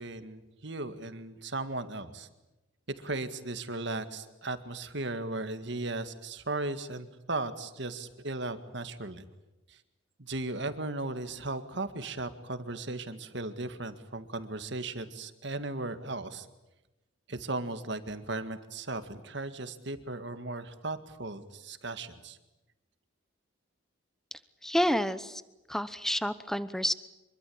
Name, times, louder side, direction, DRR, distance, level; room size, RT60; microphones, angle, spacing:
voice 1, 0.0-2.3 3.0-9.3 9.7-9.8 10.2-16.5 17.3-22.4, right 2 dB, 55° right, 10 dB, 1.9 m, -36 dB
voice 2, 24.6-25.4 25.7-26.9, equal, ahead, 14 dB, 0.9 m, -29 dB
25.5 x 23.0 x 8.7 m, 1.0 s
head